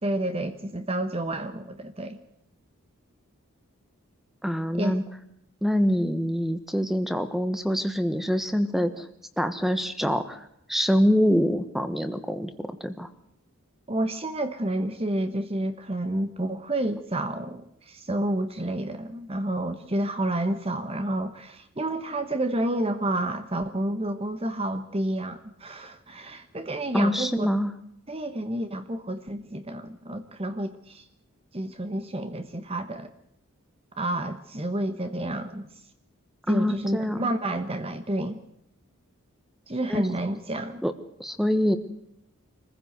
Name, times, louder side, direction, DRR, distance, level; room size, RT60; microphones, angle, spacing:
voice 1, 0.0-2.2 4.7-5.0 13.9-27.5 28.1-31.0 31.5-33.1 34.0-35.7 36.5-38.4 39.7-40.8, right 1 dB, 25° right, 9 dB, 1.1 m, -30 dB
voice 2, 4.4-5.0 5.6-9.1 9.4-10.4 10.7-13.1 26.9-27.7 36.5-37.3 39.9-40.1 40.8-40.9 41.2-41.8, equal, ahead, 11 dB, 1.3 m, -25 dB
24.5 x 15.5 x 8.0 m, 0.75 s
head